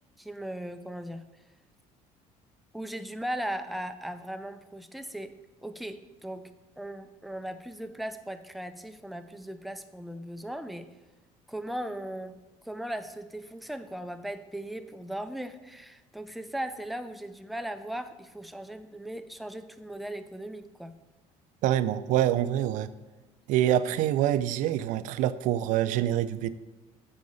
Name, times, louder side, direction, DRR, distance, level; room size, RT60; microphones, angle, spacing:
voice 1, 0.2-1.2 2.7-5.3 5.6-6.5 6.8-10.9 11.5-12.4 12.6-20.9, right 1 dB, ahead, 9 dB, 0.4 m, -38 dB
voice 2, 21.6-22.9 23.5-26.5, right 12 dB, 70° right, 13 dB, 0.4 m, -26 dB
6.5 x 4.7 x 5.4 m, 1.2 s
cardioid pair, 120°, 13 cm